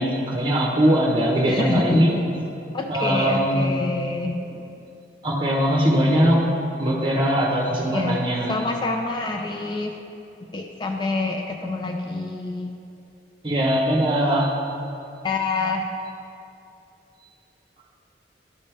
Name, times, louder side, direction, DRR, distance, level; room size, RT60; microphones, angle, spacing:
voice 1, 0.0-2.1 2.9-3.6 4.4-4.5 5.2-6.4 6.8-8.6 13.4-14.5, equal, 25° right, -2 dB, 1.1 m, -21 dB
voice 2, 1.4-2.1 2.7-4.4 7.9-8.2 8.5-9.9 10.5-12.7 15.2-15.9, left 3 dB, 25° left, 3 dB, 0.3 m, -26 dB
11.5 x 5.3 x 3.4 m, 2.7 s
head